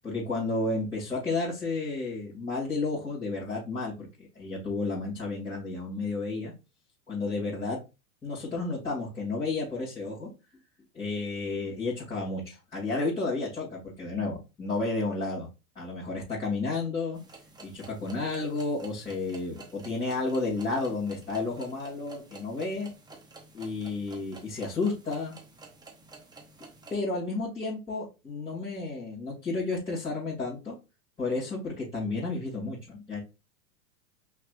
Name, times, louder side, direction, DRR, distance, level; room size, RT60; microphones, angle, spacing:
voice 1, 0.0-6.5 7.1-7.8 8.2-10.3 10.9-15.5 15.7-17.2 17.6-22.9 23.5-25.3 26.9-30.7 31.2-33.2, left 3 dB, 10° left, -8 dB, 2.4 m, -32 dB
sound 1, 17.1-27.0, right 3 dB, 10° right, 0.9 m, -51 dB
5.7 x 3.3 x 2.5 m, 0.28 s
hypercardioid pair, 110°, 44 cm